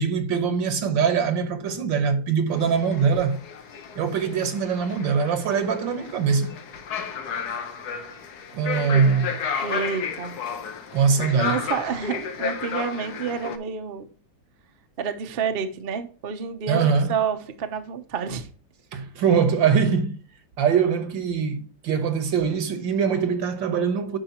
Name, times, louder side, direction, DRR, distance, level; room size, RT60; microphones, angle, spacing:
voice 1, 0.0-3.4 4.0-6.6 8.5-9.4 10.9-11.6 16.7-17.2 18.9-20.2 20.6-24.2, right 6 dB, 75° right, 1.9 m, -22 dB
sound 1, 2.5-13.6, left 6 dB, 60° left, 1.4 m, -33 dB
voice 2, 9.6-10.4 11.2-14.1 15.0-18.5, right 6 dB, 45° right, 0.8 m, -29 dB
10.5 x 4.9 x 2.9 m
omnidirectional pair, 2.1 m